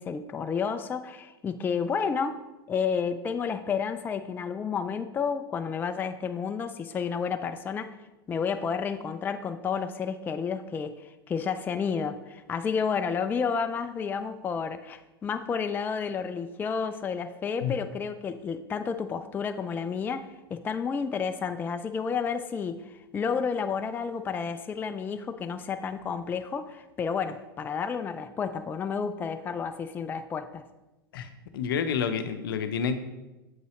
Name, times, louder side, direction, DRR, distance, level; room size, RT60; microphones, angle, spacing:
voice 1, 0.0-2.4 2.7-8.0 8.3-30.6, left 6 dB, 15° left, 9 dB, 0.3 m, -31 dB
voice 2, 31.1-33.0, left 7 dB, 70° left, 9 dB, 0.6 m, -29 dB
7.4 x 5.4 x 3.1 m, 1.1 s
hypercardioid pair, 90°, 12 cm